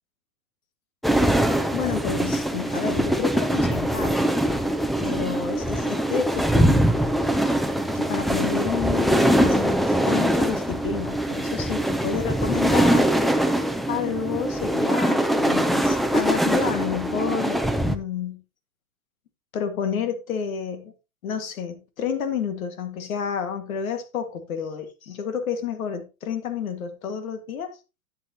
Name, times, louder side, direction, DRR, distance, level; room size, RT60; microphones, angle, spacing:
sound 1, 1.0-18.0, right 1 dB, ahead, 0.5 m, -22 dB
voice 1, 1.7-4.2 5.0-6.9 7.9-13.1 13.9-18.4 19.5-20.9 21.2-27.8, left 7 dB, 85° left, 1.9 m, -30 dB
11.0 x 8.1 x 2.9 m
hypercardioid pair, 115°, 41 cm